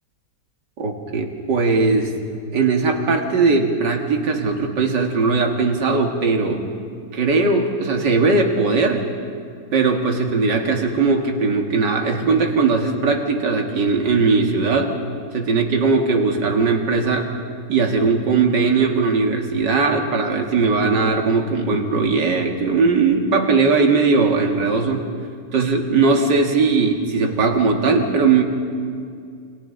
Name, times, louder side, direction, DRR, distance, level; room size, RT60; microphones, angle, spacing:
voice 1, 0.8-2.1 2.5-6.7 7.1-9.0 9.7-15.0 15.3-17.3 17.7-25.1 25.5-28.4, right 4 dB, 80° right, 2 dB, 2.5 m, -19 dB
29.5 x 26.5 x 3.9 m, 2.3 s
omnidirectional pair, 1.9 m